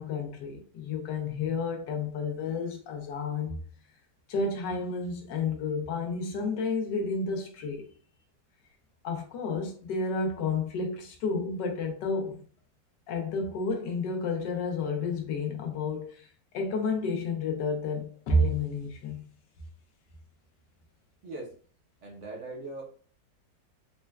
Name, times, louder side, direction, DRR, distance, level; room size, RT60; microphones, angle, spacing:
voice 1, 0.0-3.6 4.3-7.9 9.0-12.4 13.1-16.3 16.5-19.2, left 3 dB, 80° left, 1.4 m, -31 dB
voice 2, 22.0-22.8, right 2 dB, 55° right, 0.9 m, -40 dB
4.2 x 2.2 x 2.2 m
omnidirectional pair, 1.9 m